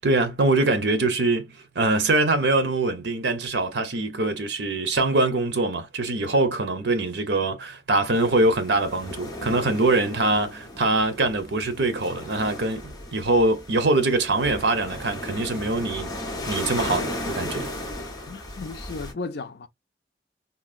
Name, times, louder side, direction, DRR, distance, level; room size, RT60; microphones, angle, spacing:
voice 1, 0.0-16.1 16.5-17.7, right 2 dB, 80° right, 0.8 m, -23 dB
sound 1, 8.1-19.1, left 1 dB, 20° left, 0.9 m, -35 dB
voice 2, 18.3-19.7, left 3 dB, 65° left, 0.5 m, -35 dB
3.8 x 2.2 x 2.4 m
head